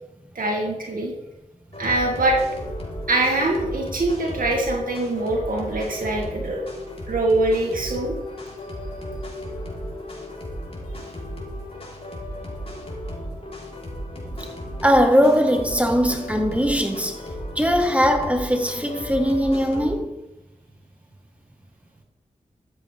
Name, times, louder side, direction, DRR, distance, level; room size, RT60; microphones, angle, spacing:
voice 1, 0.4-1.1 1.8-2.4 3.1-6.6 7.1-8.1, right 2 dB, 75° right, 2.2 m, -23 dB
sound 1, 1.7-19.9, equal, 45° left, 4.3 m, -35 dB
voice 2, 14.8-17.2 17.5-20.1, equal, 10° right, 1.5 m, -20 dB
13.5 x 8.4 x 3.5 m
cardioid pair, 40°, 14 cm